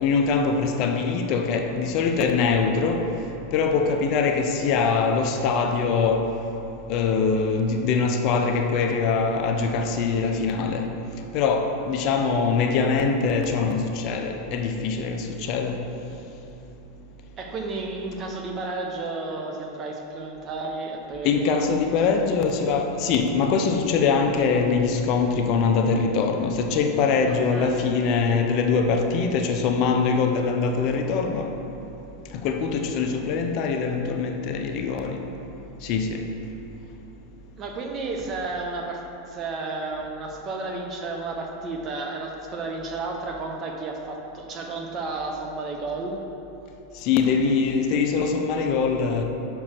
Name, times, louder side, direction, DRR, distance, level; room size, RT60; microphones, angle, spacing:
voice 1, 0.0-3.0 3.5-6.2 6.9-10.9 11.3-15.8 21.2-31.5 32.4-35.2 35.8-36.2 47.0-49.2, left 5 dB, 50° left, 0.6 m, -23 dB
voice 2, 17.4-22.0 27.3-27.8 37.6-46.2, right 3 dB, 35° right, 0.9 m, -32 dB
6.2 x 4.6 x 5.9 m
supercardioid pair, 125°, 0 cm